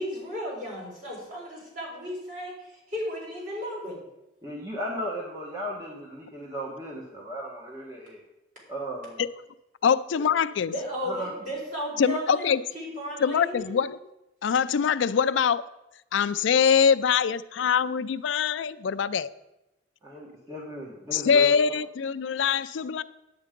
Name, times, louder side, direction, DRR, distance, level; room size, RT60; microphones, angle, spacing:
voice 1, 0.0-2.5 2.9-4.0 10.6-13.8, equal, 40° right, 4.7 m, -34 dB
voice 2, 4.4-8.2 8.7-9.1 11.1-11.3 20.0-21.5, equal, 15° right, 1.4 m, -36 dB
voice 3, 9.8-10.7 12.0-12.6 13.2-14.0 14.4-15.6 16.1-19.3 21.1-23.0, left 6 dB, 75° left, 0.4 m, -23 dB
9.8 x 8.7 x 5.1 m
head